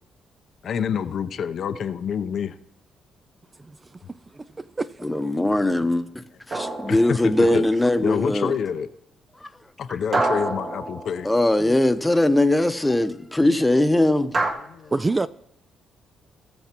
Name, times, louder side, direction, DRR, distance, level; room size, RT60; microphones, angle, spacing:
voice 1, 0.6-2.6 6.9-7.6 8.0-8.9 9.8-11.3 14.6-14.9, left 7 dB, 60° left, 0.6 m, -27 dB
voice 2, 4.1-5.1 14.9-15.3, right 3 dB, 25° right, 0.3 m, -27 dB
voice 3, 5.0-6.1 6.5-8.5 10.1-10.2 11.2-14.3, left 1 dB, 10° left, 0.9 m, -20 dB
sound 1, 6.5-7.7 10.1-11.8 14.3-14.5, right 2 dB, 40° right, 1.6 m, -27 dB
18.0 x 7.1 x 3.0 m
cardioid pair, 90°, 0 cm